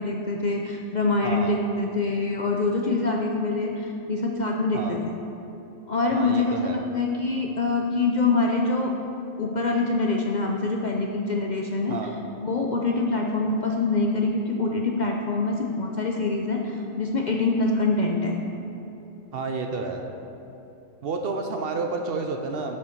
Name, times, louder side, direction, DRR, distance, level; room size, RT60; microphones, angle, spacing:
voice 1, 0.0-5.0 5.9-8.9 9.4-12.0 12.4-18.3, left 3 dB, 55° left, 0 dB, 0.5 m, -25 dB
voice 2, 6.1-6.8 11.9-12.1 19.3-20.0 21.0-22.8, right 4 dB, 55° right, 3 dB, 0.7 m, -30 dB
7.6 x 6.4 x 5.8 m, 2.8 s
omnidirectional pair, 1.4 m